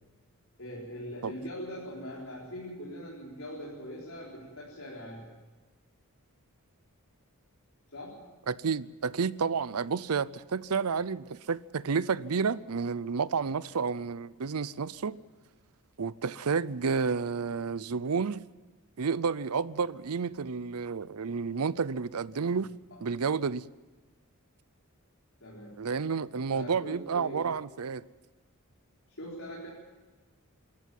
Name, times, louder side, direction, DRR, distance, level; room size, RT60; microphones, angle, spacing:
voice 1, 0.6-5.3 7.9-8.3 22.9-23.0 25.4-25.8 26.5-27.4 29.1-29.7, equal, 65° left, 4.3 m, -42 dB
voice 2, 8.5-15.2 16.0-18.4 19.0-22.7 23.0-23.7 25.8-28.0, right 5 dB, 85° right, 0.6 m, -30 dB
26.0 x 14.0 x 9.2 m
head